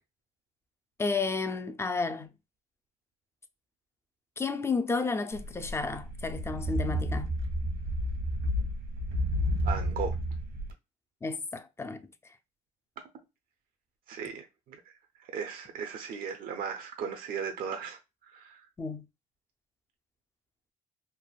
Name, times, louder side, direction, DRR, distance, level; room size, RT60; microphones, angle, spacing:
voice 1, 1.0-2.3 4.4-7.3 11.2-12.1 18.8-19.1, left 4 dB, 15° left, 0.4 m, -32 dB
sound 1, 5.3-10.7, equal, 80° right, 1.0 m, -31 dB
voice 2, 9.6-10.1 14.1-14.8 15.2-18.6, right 6 dB, 55° right, 0.5 m, -37 dB
3.3 x 2.1 x 2.3 m
cardioid pair, 110°, 17 cm